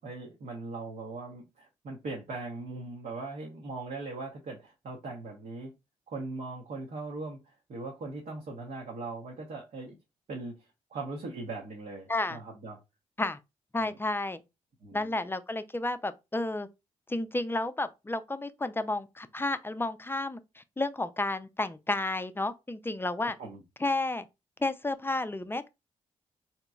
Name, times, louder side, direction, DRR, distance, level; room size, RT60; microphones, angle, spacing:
voice 1, 0.0-5.7 6.1-10.0 10.3-10.6 10.9-12.8 13.8-14.0 14.8-15.2 23.4-23.6, right 3 dB, 60° right, 0.9 m, -40 dB
voice 2, 13.7-14.4 14.9-16.7 17.1-23.4 23.8-24.3 24.6-25.7, left 2 dB, 15° left, 0.4 m, -31 dB
3.8 x 2.8 x 2.3 m
hypercardioid pair, 40°, 15 cm